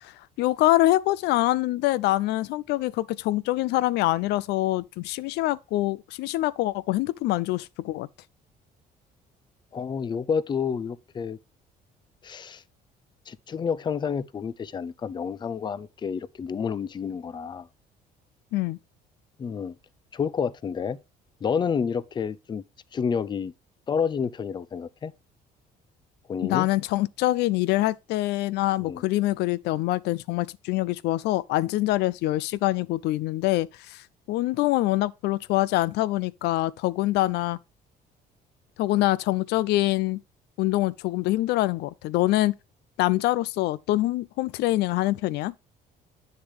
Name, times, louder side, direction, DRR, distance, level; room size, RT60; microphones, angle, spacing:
voice 1, 0.0-8.1 18.5-18.8 26.4-37.6 38.8-40.2 40.6-42.5 43.0-45.5, left 17 dB, 80° left, 0.4 m, -25 dB
voice 2, 9.7-11.4 12.2-12.6 13.3-17.7 19.4-19.8 20.1-21.0 21.4-22.6 22.9-23.5 23.9-25.1 26.3-26.7 28.8-29.0, left 6 dB, 25° left, 0.4 m, -29 dB
8.0 x 6.6 x 3.1 m
cardioid pair, 110°, 17 cm